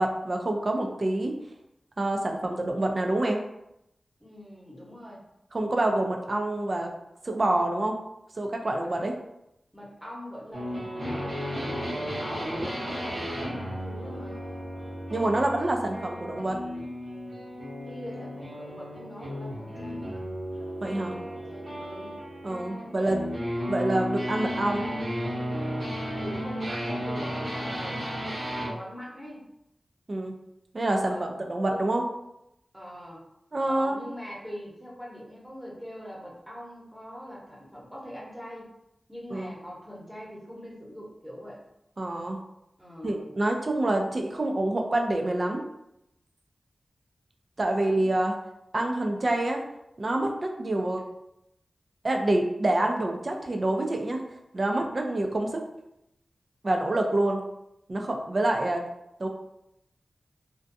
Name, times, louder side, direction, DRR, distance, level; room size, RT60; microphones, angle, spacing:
voice 1, 0.0-1.3 2.0-3.4 5.5-6.9 7.2-8.0 8.3-9.1 15.1-16.6 20.8-21.1 22.4-23.2 23.7-24.9 30.1-30.4 30.7-32.0 33.5-34.0 39.3-39.5 42.0-42.4 43.0-45.6 47.6-48.4 48.7-49.6 50.0-51.0 52.0-54.2 54.5-55.6 56.6-57.4 57.9-58.9 59.2-59.3, right 1 dB, 50° right, 2 dB, 0.4 m, -27 dB
voice 2, 4.2-5.2 8.8-8.9 9.7-14.4 17.9-20.3 21.0-22.3 26.2-29.5 31.0-31.3 31.6-31.8 32.7-33.2 33.6-38.7 39.1-41.6 42.8-43.3 47.6-48.1, equal, 5° right, -5 dB, 0.9 m, -43 dB
sound 1, 10.5-28.8, equal, 85° right, 1.1 m, -34 dB
2.5 x 2.2 x 2.6 m, 0.84 s
cardioid pair, 45°, 0 cm